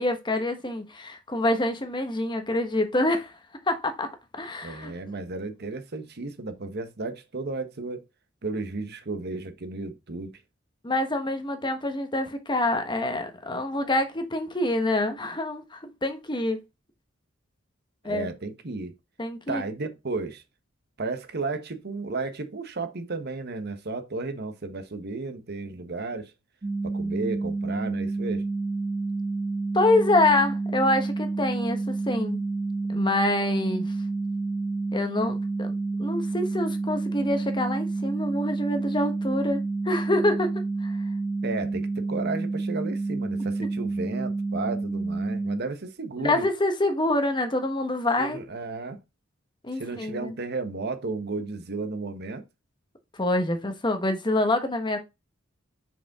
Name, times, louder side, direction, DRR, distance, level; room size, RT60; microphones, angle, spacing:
voice 1, 0.0-3.3 3.7-4.1 4.4-4.9 10.8-16.6 18.0-18.3 19.2-19.6 29.7-32.4 32.9-33.8 34.9-35.7 36.0-40.5 40.8-41.0 46.2-48.4 49.6-50.4 53.1-55.0, left 1 dB, 25° left, 1.2 m, -26 dB
voice 2, 4.6-8.0 8.4-10.3 18.0-18.9 19.5-20.4 21.0-26.3 26.8-28.4 41.4-46.5 48.2-49.0 49.7-52.4, right 3 dB, 55° right, 1.1 m, -33 dB
sound 1, 26.6-45.6, right 3 dB, 25° right, 0.5 m, -29 dB
5.7 x 5.0 x 3.6 m
head